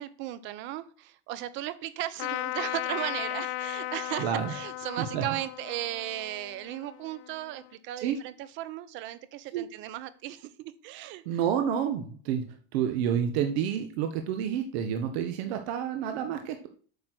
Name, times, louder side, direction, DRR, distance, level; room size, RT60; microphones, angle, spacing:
voice 1, 0.0-11.2, right 14 dB, 40° right, 15 dB, 0.8 m, -36 dB
Trumpet, 2.2-7.7, left 19 dB, 85° left, 0.6 m, -36 dB
voice 2, 4.2-4.5 5.0-5.2 8.0-8.2 9.5-9.7 11.2-16.7, right 9 dB, 90° right, 6 dB, 1.3 m, -29 dB
8.6 x 6.4 x 6.1 m, 0.44 s
cardioid pair, 175°, 31 cm